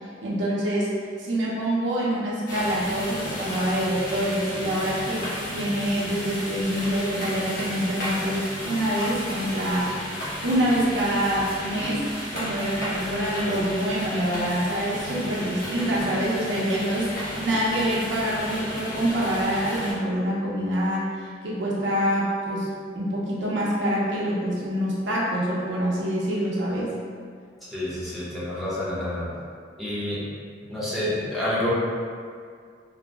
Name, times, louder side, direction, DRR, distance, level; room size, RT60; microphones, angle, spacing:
voice 1, 0.2-0.9 1.2-10.0 10.4-12.1 12.3-22.7 23.0-26.9, equal, 70° right, -6 dB, 0.5 m, -26 dB
sound 1, 2.5-19.9, equal, 45° left, 0.7 m, -33 dB
voice 2, 27.7-29.3 29.8-30.2 30.7-31.7, left 1 dB, ahead, -10 dB, 0.5 m, -28 dB
2.5 x 2.0 x 3.2 m, 2.1 s
head